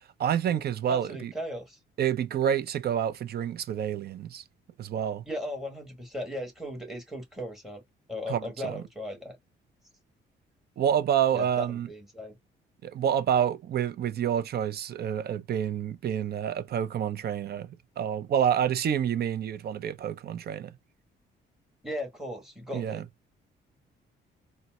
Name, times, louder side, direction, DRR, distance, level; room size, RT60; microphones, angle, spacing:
voice 1, 0.2-1.3 2.0-4.4 4.8-5.2 8.3-8.8 10.8-11.9 12.8-20.7 22.7-23.0, right 9 dB, 55° right, 0.5 m, -28 dB
voice 2, 0.9-1.8 5.2-7.8 8.1-9.4 11.3-12.4 21.8-23.0, left 1 dB, ahead, 1.5 m, -37 dB
4.0 x 2.1 x 2.2 m
cardioid pair, 90°, 20 cm